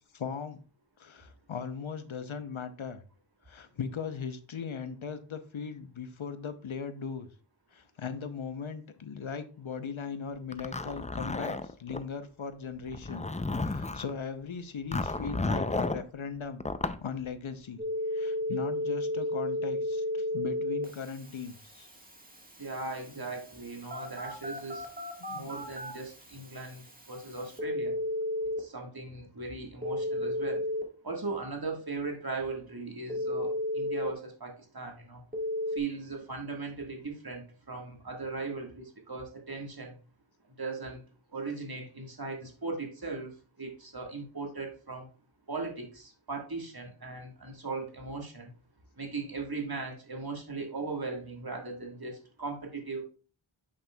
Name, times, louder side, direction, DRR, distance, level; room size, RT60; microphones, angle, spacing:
voice 1, 0.1-0.6 1.0-3.0 3.5-7.3 7.7-13.3 13.5-16.6 17.0-17.8 18.1-21.9 25.2-25.5, left 6 dB, 80° left, 10 dB, 0.8 m, -38 dB
Zipper (clothing), 10.5-12.0 12.9-14.1 14.9-16.0 16.6-17.0, left 3 dB, 15° left, 0.4 m, -32 dB
Telephone, 17.8-28.6 29.8-30.8 33.1-34.1 35.3-35.8, left 1 dB, 20° right, 1.5 m, -34 dB
voice 2, 22.6-24.9 25.3-28.0 28.6-30.6 31.0-35.2 35.7-39.9 40.6-41.0 41.3-45.1 45.5-48.5 49.0-53.0, right 3 dB, 50° right, 1 dB, 1.6 m, -38 dB
7.2 x 6.5 x 2.2 m, 0.37 s
wide cardioid pair, 40°, 47 cm